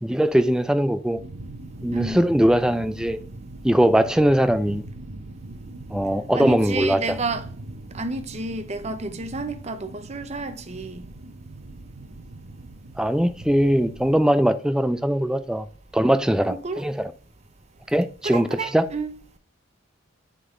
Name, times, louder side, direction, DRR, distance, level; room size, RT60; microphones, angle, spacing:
voice 1, 0.0-1.2 1.8-3.2 3.6-4.8 5.9-7.2 13.0-15.7 15.9-17.1 17.9-18.9, equal, 5° right, 0.3 m, -21 dB
sound 1, 1.1-14.2, right 2 dB, 80° right, 0.8 m, -40 dB
voice 2, 1.9-2.2 6.3-7.4 7.9-11.1 16.4-16.8 18.2-19.1, right 3 dB, 35° right, 0.7 m, -30 dB
6.9 x 3.7 x 4.9 m
head